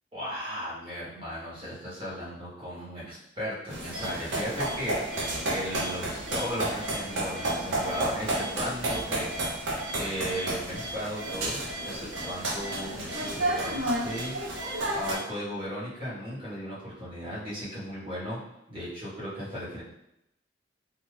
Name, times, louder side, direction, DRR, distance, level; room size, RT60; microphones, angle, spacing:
voice 1, 0.1-9.4 9.9-18.4 18.7-19.8, equal, 25° right, -9 dB, 1.3 m, -36 dB
sound 1, 3.7-15.1, right 1 dB, 80° right, 0.7 m, -31 dB
2.6 x 2.4 x 3.2 m, 0.82 s
head